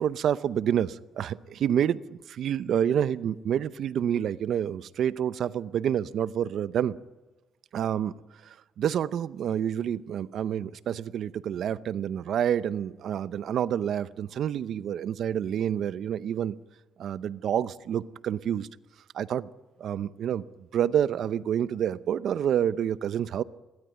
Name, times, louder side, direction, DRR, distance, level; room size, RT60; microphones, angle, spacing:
voice 1, 0.0-7.0 7.7-8.2 8.4-16.6 17.0-18.7 19.1-19.5 19.8-20.4 20.7-23.4, right 9 dB, 70° right, 16 dB, 0.7 m, -28 dB
21.5 x 17.5 x 9.1 m, 1.1 s
cardioid pair, 90°, 0 cm